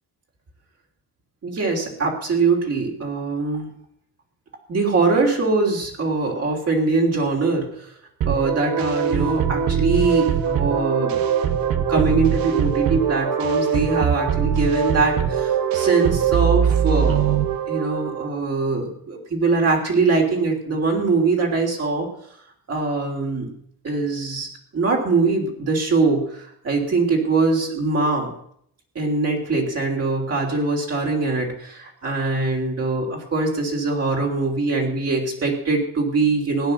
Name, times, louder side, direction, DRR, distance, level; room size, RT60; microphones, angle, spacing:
voice 1, 1.4-3.7 4.7-7.9 8.3-11.2 11.9-22.1 22.7-23.5 23.8-24.5 24.7-28.3 29.0-36.7, right 3 dB, 40° right, 0 dB, 3.4 m, -22 dB
sound 1, 8.2-18.3, right 8 dB, 65° right, 1.4 m, -22 dB
16.5 x 9.9 x 6.6 m, 0.69 s
cardioid pair, 130°, 37 cm